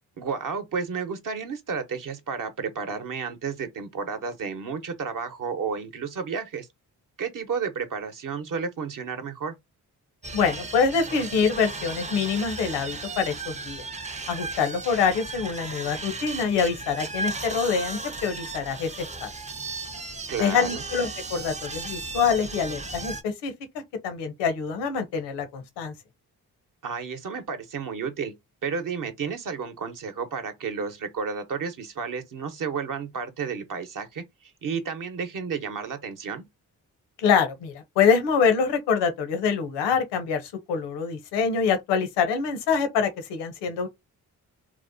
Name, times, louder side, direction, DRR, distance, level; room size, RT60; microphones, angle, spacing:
voice 1, 0.2-6.7 7.2-9.5 20.3-20.8 26.8-28.3 28.6-36.4, right 5 dB, 50° right, 0.8 m, -32 dB
sound 1, 10.2-23.2, right 3 dB, 20° right, 0.4 m, -35 dB
voice 2, 10.3-13.8 14.3-18.9 19.2-19.3 20.4-23.5 24.0-25.9 37.2-43.9, left 6 dB, 90° left, 0.7 m, -25 dB
2.9 x 2.1 x 2.6 m
supercardioid pair, 45°, 40 cm